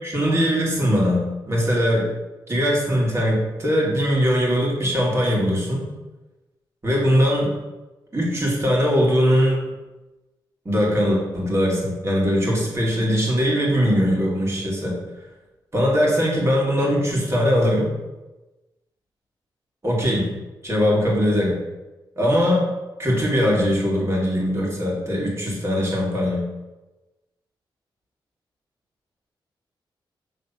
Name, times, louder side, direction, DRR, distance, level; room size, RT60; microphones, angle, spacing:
voice 1, 0.0-2.1 2.5-5.9 6.8-7.5 8.1-9.6 10.7-15.0 15.7-17.9 19.8-20.3 20.6-21.6 22.2-22.7 23.0-26.5, equal, 30° right, -3 dB, 2.2 m, -21 dB
6.6 x 3.4 x 5.5 m, 1.1 s
wide cardioid pair, 105°, 9 cm